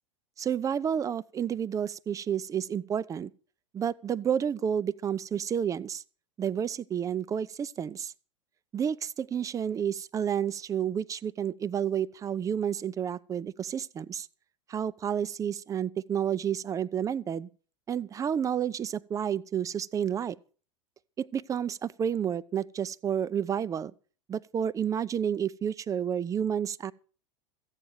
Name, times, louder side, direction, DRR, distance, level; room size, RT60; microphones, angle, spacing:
voice 1, 0.4-3.3 3.7-6.0 6.4-8.1 8.7-14.3 14.7-17.5 17.9-20.4 21.2-23.9 24.3-26.9, right 8 dB, 20° right, 0.6 m, -30 dB
14.5 x 9.1 x 6.4 m
figure-of-eight pair, 90°, 17 cm